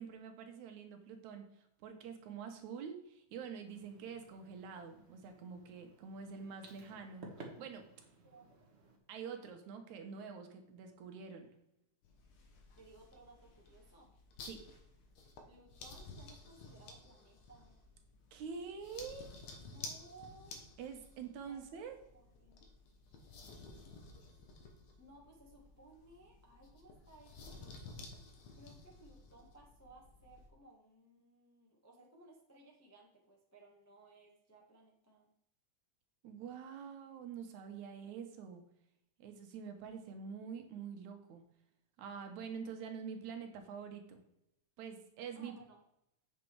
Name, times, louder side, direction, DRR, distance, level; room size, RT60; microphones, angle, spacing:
voice 1, 0.0-7.8 9.1-11.5 14.5-14.6 18.3-19.3 20.8-22.0 36.2-38.6 39.2-41.4 42.0-44.2 44.8-45.5, right 6 dB, 80° right, 5 dB, 2.5 m, -46 dB
sound 1, 3.6-9.0, right 3 dB, 35° right, 1.1 m, -56 dB
sound 2, 12.0-30.5, left 3 dB, 70° left, 2.3 m, -54 dB
voice 2, 12.8-14.1 15.5-17.8 19.5-20.5 21.5-22.6 25.0-28.0 28.5-35.3 45.3-45.8, right 2 dB, 10° left, -2 dB, 0.7 m, -60 dB
8.3 x 6.5 x 4.6 m, 0.79 s
omnidirectional pair, 3.3 m